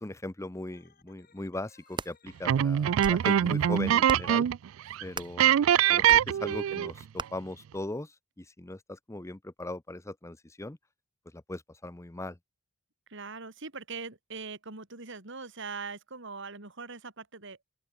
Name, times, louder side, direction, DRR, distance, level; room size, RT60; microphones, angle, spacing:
voice 1, 0.0-4.5 5.0-5.6 5.9-10.8 11.3-12.4, left 1 dB, 15° left, 0.7 m, -39 dB
Organ, 0.7-4.4, left 5 dB, 50° left, 4.4 m, -62 dB
sound 1, 1.7-2.1 2.8-3.3 4.0-4.4 5.1-5.4 6.1-6.3 7.2-7.3, right 3 dB, 25° right, 0.9 m, -38 dB
sound 2, 2.4-4.7 4.9-5.0 5.4-7.0, right 10 dB, 80° right, 0.3 m, -23 dB
voice 2, 13.1-17.6, right 4 dB, 65° right, 3.2 m, -41 dB
open air
head